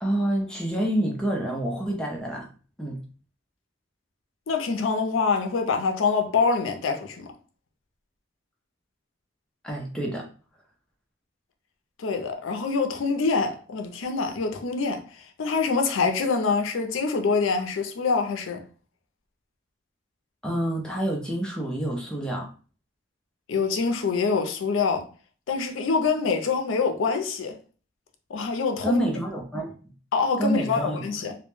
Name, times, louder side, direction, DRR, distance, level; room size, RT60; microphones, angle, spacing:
voice 1, 0.0-2.5 2.8-3.0 9.6-10.3 20.4-22.5 28.8-29.7 30.4-31.1, right 1 dB, 5° left, 0.4 m, -27 dB
voice 2, 4.5-7.3 12.0-18.6 23.5-25.0 25.5-27.6 28.3-29.0 30.1-31.4, left 4 dB, 85° left, 0.4 m, -25 dB
2.1 x 2.0 x 3.0 m
head